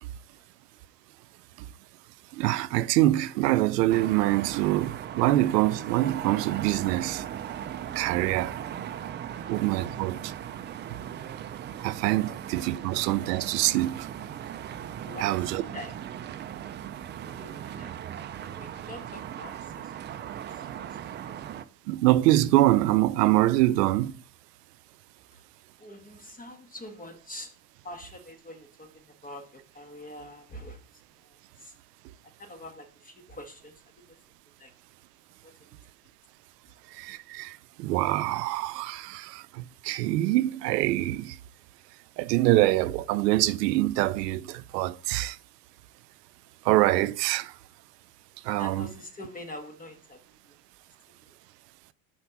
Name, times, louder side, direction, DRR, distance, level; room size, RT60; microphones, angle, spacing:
voice 1, 0.0-0.4 8.6-8.7 9.3-9.5 12.2-12.4 12.8-12.9 15.0-15.9 17.2-18.2 18.4-21.4 25.3-25.4 25.8-27.5 27.8-31.7 32.4-34.2 34.6-34.7 35.4-35.7 36.7-36.8 48.6-50.6 51.2-51.3, left 1 dB, 15° left, 1.6 m, -46 dB
voice 2, 2.3-7.3 8.0-8.6 9.4-10.3 11.8-14.1 15.2-15.6 21.9-24.2 36.9-41.4 42.2-45.4 46.6-47.6 48.4-48.9, right 16 dB, 85° right, 0.5 m, -25 dB
sound 1, 3.9-21.6, right 10 dB, 25° right, 0.4 m, -38 dB
5.9 x 4.4 x 5.7 m
supercardioid pair, 100°, 47 cm